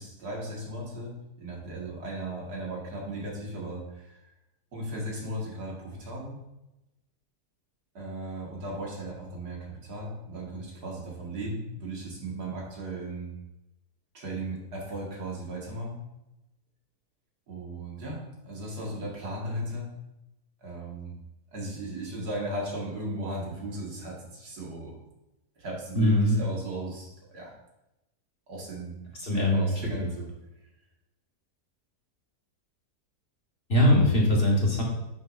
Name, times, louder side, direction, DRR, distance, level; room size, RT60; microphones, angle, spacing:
voice 1, 0.0-4.2 4.7-6.4 7.9-13.3 14.1-16.0 17.5-19.9 20.6-21.2 21.5-25.0 25.6-27.5 28.5-28.9 29.3-30.3, right 1 dB, 80° right, -3 dB, 2.4 m, -36 dB
voice 2, 26.0-26.4 29.2-29.6 33.7-34.8, left 1 dB, 35° left, -3 dB, 1.7 m, -21 dB
9.6 x 6.3 x 2.6 m, 0.93 s
omnidirectional pair, 1.7 m